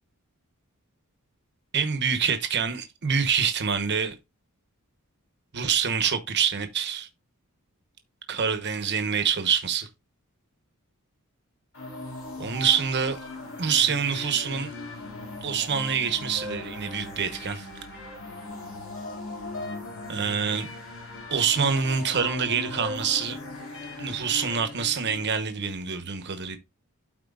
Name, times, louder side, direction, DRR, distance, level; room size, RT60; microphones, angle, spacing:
voice 1, 1.7-4.2 5.5-7.1 8.3-9.9 12.4-13.2 13.6-14.7 15.4-17.7 20.1-20.7 21.3-23.4 24.0-26.6, right 6 dB, 50° right, 1.1 m, -26 dB
sound 1, 11.7-25.3, left 2 dB, 60° left, 4.0 m, -38 dB
13.0 x 4.4 x 2.4 m
head